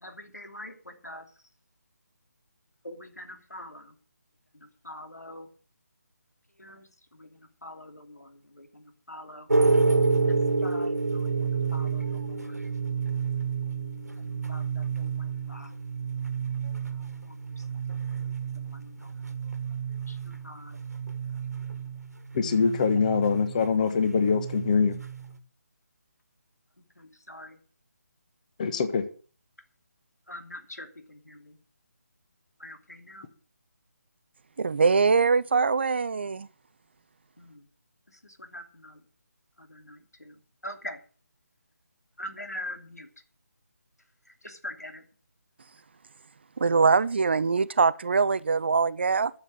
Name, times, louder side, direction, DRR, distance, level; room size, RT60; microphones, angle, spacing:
voice 1, 0.0-1.2 2.8-3.8 4.8-5.5 6.6-6.9 7.2-7.3 7.6-8.8 9.1-9.5 10.3-10.4 10.6-12.5 14.2-15.7 18.7-19.1 20.1-20.8 27.3-27.5 30.3-31.5 32.6-33.3 37.4-37.6 38.2-39.0 39.6-40.3 40.6-41.0 42.2-43.1 44.4-45.0, left 1 dB, 80° left, 2.9 m, -43 dB
sound 1, 9.5-25.4, right 4 dB, 80° right, 1.6 m, -29 dB
voice 2, 22.3-24.9 28.6-29.0, left 5 dB, 30° left, 1.2 m, -24 dB
voice 3, 34.6-36.5 46.6-49.3, right 5 dB, 40° right, 0.5 m, -23 dB
12.0 x 7.4 x 7.7 m
figure-of-eight pair, 150°, 9 cm